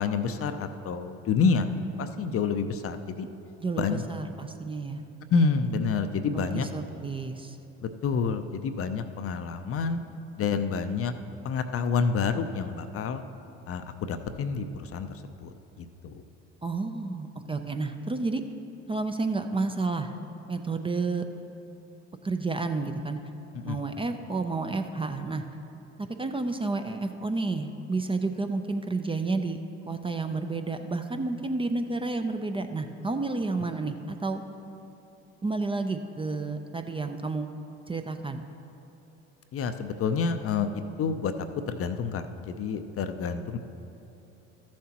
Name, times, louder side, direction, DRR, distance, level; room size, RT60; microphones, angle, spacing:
voice 1, 0.0-1.7 2.0-3.3 3.8-4.0 5.3-6.7 7.8-10.0 10.4-11.1 11.4-13.2 13.7-15.1 15.4-15.5 15.8-16.2 23.5-23.8 39.5-41.3 41.7-43.6, left 5 dB, 40° left, 9 dB, 0.6 m, -28 dB
voice 2, 3.6-5.0 6.3-7.6 16.6-18.4 18.9-20.1 20.5-21.2 22.2-23.2 23.6-25.4 26.0-29.6 29.9-34.4 35.4-37.5 37.9-38.4, right 3 dB, 15° right, 7 dB, 0.5 m, -30 dB
13.5 x 7.3 x 2.9 m, 3.0 s
hypercardioid pair, 65°, 34 cm